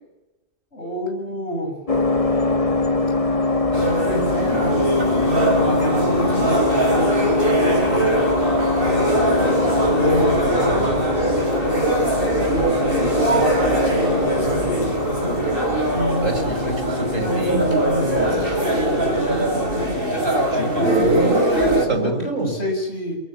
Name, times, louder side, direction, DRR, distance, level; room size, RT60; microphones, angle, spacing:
voice 1, 0.7-1.8 3.7-5.4 5.8-8.0 9.7-11.0 12.8-14.9 17.9-18.4 20.5-23.2, equal, 55° left, 1 dB, 8.3 m, -27 dB
sound 1, 1.9-20.0, left 2 dB, 25° left, 1.6 m, -23 dB
sound 2, 3.7-21.8, right 1 dB, 45° right, 6.3 m, -22 dB
voice 2, 16.2-17.6 20.7-21.3 21.9-22.5, right 2 dB, 75° right, 4 dB, 6.1 m, -26 dB
27.0 x 16.0 x 9.9 m, 1.0 s
omnidirectional pair, 1.3 m